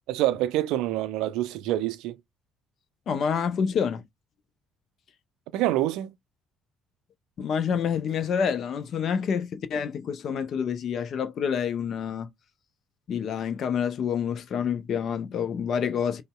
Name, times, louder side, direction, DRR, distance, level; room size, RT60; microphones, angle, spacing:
voice 1, 0.1-2.2 5.5-6.1, right 14 dB, 60° right, 0.4 m, -26 dB
voice 2, 3.1-4.0 7.4-12.3 13.1-16.2, left 7 dB, 50° left, 0.5 m, -28 dB
5.2 x 2.1 x 2.2 m
figure-of-eight pair, 50°, 0 cm